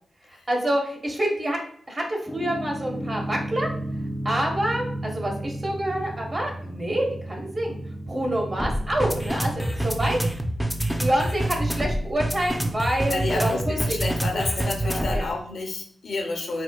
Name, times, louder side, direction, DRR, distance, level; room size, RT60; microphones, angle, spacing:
voice 1, 0.5-1.6 1.9-3.7 4.2-7.8 8.1-10.2 11.0-14.0 14.6-15.3, right 1 dB, 35° right, 1 dB, 0.9 m, -27 dB
sound 1, 2.3-15.3, right 1 dB, ahead, 0.4 m, -29 dB
voice 2, 13.0-16.6, left 3 dB, 75° left, 3 dB, 0.6 m, -30 dB
4.2 x 2.2 x 2.2 m, 0.63 s
cardioid pair, 70°, 0 cm